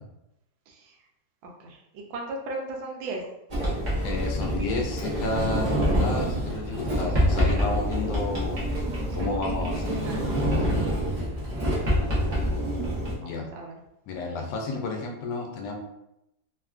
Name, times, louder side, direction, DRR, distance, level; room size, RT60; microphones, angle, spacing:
voice 1, 1.6-3.2 9.2-9.3 9.7-10.4 11.8-11.9 13.2-13.7, right 2 dB, 90° right, 1 dB, 1.4 m, -37 dB
Sliding door, 3.5-13.1, equal, 45° right, 0.5 m, -26 dB
voice 2, 4.0-8.6 9.1-10.1 13.2-13.5 14.1-15.8, left 3 dB, 75° left, 1 dB, 1.2 m, -31 dB
3.5 x 2.2 x 2.4 m, 0.85 s
omnidirectional pair, 2.0 m